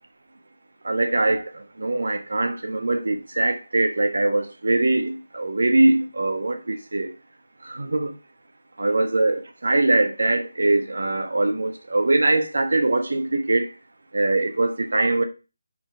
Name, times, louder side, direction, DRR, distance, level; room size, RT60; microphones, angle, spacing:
voice 1, 0.8-7.1 7.6-8.1 8.8-13.7 14.1-15.2, right 2 dB, 70° right, 1.3 m, -22 dB
5.5 x 5.2 x 4.6 m
figure-of-eight pair, 170°, 0 cm